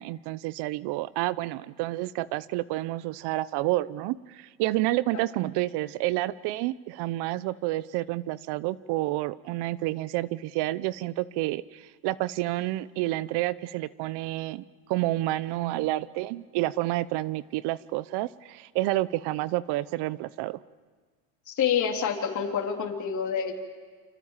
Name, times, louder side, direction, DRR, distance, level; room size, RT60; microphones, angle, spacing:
voice 1, 0.0-20.6, right 17 dB, 65° right, 18 dB, 0.9 m, -29 dB
voice 2, 21.5-23.6, left 7 dB, 45° left, 0 dB, 3.6 m, -27 dB
29.5 x 26.5 x 7.4 m, 1.5 s
supercardioid pair, 95°, 43 cm